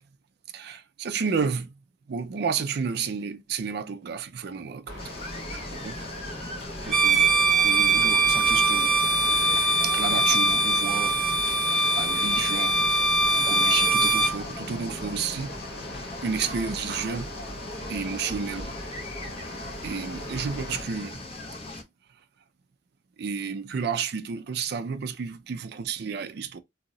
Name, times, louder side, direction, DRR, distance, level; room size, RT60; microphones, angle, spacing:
voice 1, 0.5-1.7 2.1-5.0 5.5-6.1 6.8-7.2 7.6-9.0 9.8-11.2 11.9-13.1 13.4-15.7 16.2-17.3 17.9-18.7 19.8-21.2 23.2-26.6, right 6 dB, 65° right, 0.4 m, -31 dB
sound 1, 4.9-20.8, equal, 70° left, 1.2 m, -40 dB
sound 2, 5.0-21.8, left 2 dB, 35° left, 0.7 m, -39 dB
Bowed string instrument, 6.9-14.4, right 2 dB, ahead, 0.8 m, -22 dB
2.7 x 2.1 x 3.7 m
head